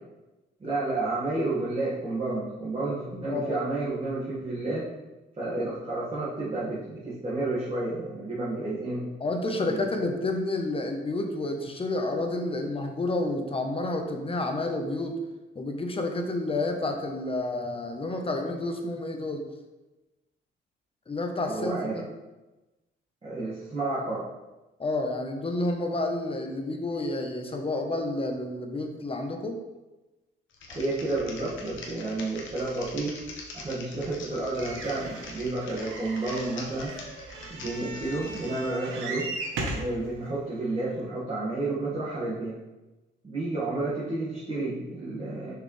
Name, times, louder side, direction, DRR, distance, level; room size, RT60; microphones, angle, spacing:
voice 1, 0.6-4.8 5.4-9.1 9.6-9.8 21.5-22.0 23.2-24.2 30.7-33.2 33.5-36.9 37.5-39.3 39.7-42.6 43.2-45.5, right 2 dB, 30° right, -9 dB, 1.8 m, -31 dB
voice 2, 3.3-3.7 9.2-15.1 15.5-19.4 21.1-22.1 24.8-29.6, left 2 dB, 30° left, 4 dB, 1.0 m, -30 dB
Typing, 30.5-38.7, left 3 dB, 70° left, 1.3 m, -43 dB
sound 1, 34.6-39.9 40.7-40.8 41.0-41.1, right 2 dB, 80° right, 1.1 m, -37 dB
6.6 x 4.9 x 3.3 m, 1.1 s
cardioid pair, 95°, 20 cm